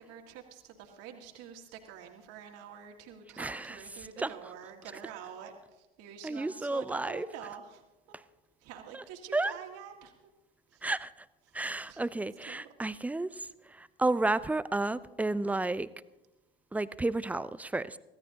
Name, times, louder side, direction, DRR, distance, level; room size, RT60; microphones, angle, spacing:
voice 1, 0.0-7.8 8.6-10.1 10.7-10.9 11.5-11.6 11.9-12.0 12.5-12.6, right 8 dB, 50° right, 3 dB, 2.1 m, -47 dB
voice 2, 3.4-4.3 6.2-7.3 8.9-9.0 9.3-9.5 10.8-11.1 11.5-15.9 16.7-18.0, right 2 dB, 5° right, 16 dB, 0.4 m, -32 dB
24.5 x 16.5 x 2.9 m, 1.0 s
figure-of-eight pair, 80°, 31 cm